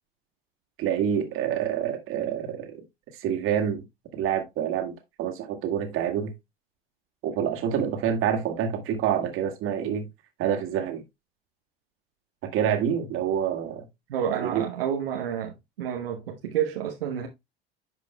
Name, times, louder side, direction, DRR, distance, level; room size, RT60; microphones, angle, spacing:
voice 1, 0.8-2.8 3.1-3.8 4.1-6.3 7.2-10.1 10.4-11.0 12.4-13.8 14.4-14.7, right 9 dB, 45° right, 2.0 m, -27 dB
voice 2, 14.1-17.3, right 9 dB, 70° right, 1.1 m, -29 dB
11.0 x 5.1 x 2.2 m
figure-of-eight pair, 75°, 30 cm